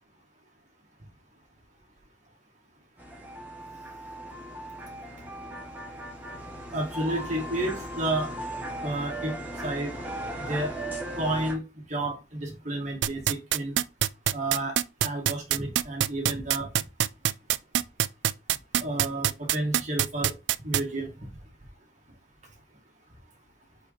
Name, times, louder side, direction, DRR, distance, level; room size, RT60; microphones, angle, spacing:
sound 1, 3.0-11.5, right 1 dB, 10° right, 2.2 m, -37 dB
voice 1, 6.7-8.3 8.8-9.3 9.6-9.9 10.4-10.8 11.1-11.6 11.9-13.8 14.3-16.7 18.8-20.3 20.6-21.3, right 1 dB, 35° right, 2.3 m, -31 dB
sound 2, 13.0-20.8, right 11 dB, 65° right, 0.4 m, -23 dB
4.9 x 4.9 x 5.2 m
head